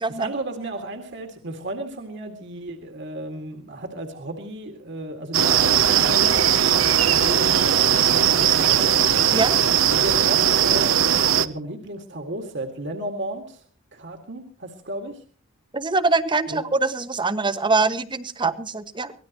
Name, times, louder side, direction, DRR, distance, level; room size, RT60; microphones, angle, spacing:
voice 1, 0.2-9.0 9.9-13.6 13.9-15.2 16.5-16.6, right 1 dB, 60° right, 4 dB, 2.2 m, -33 dB
sound 1, 5.3-11.5, right 9 dB, 80° right, 0.8 m, -19 dB
voice 2, 15.7-19.1, right 3 dB, 25° right, 12 dB, 1.0 m, -23 dB
24.0 x 18.5 x 3.0 m, 0.40 s
head